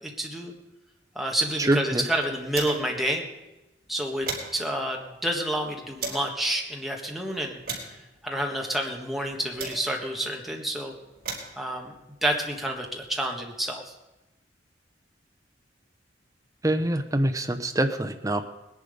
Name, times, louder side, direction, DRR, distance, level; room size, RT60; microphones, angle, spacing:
voice 1, 0.0-0.5 1.1-3.2 3.9-7.6 8.2-10.9 11.6-11.9 12.2-13.9, right 1 dB, ahead, 0 dB, 1.5 m, -29 dB
sound 1, 1.3-3.1 3.4-3.5 3.8-6.4 7.0-10.2 10.9-13.1, right 4 dB, 50° right, 3.6 m, -40 dB
voice 2, 1.7-2.0 16.6-18.5, right 1 dB, 20° right, 6 dB, 0.8 m, -25 dB
19.0 x 10.5 x 5.1 m, 1.0 s
head